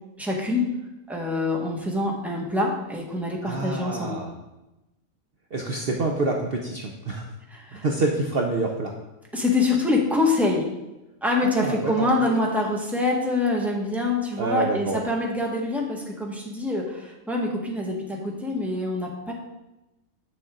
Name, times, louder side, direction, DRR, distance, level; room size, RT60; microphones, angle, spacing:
voice 1, 0.2-0.7 1.1-4.1 7.5-7.8 9.3-10.7 11.2-19.3, left 2 dB, ahead, -1 dB, 1.3 m, -25 dB
voice 2, 3.4-4.3 5.5-7.3 7.7-8.9 11.4-11.9 14.4-15.0, right 3 dB, 50° right, 1 dB, 0.9 m, -27 dB
9.1 x 6.4 x 3.8 m, 0.97 s
omnidirectional pair, 1.4 m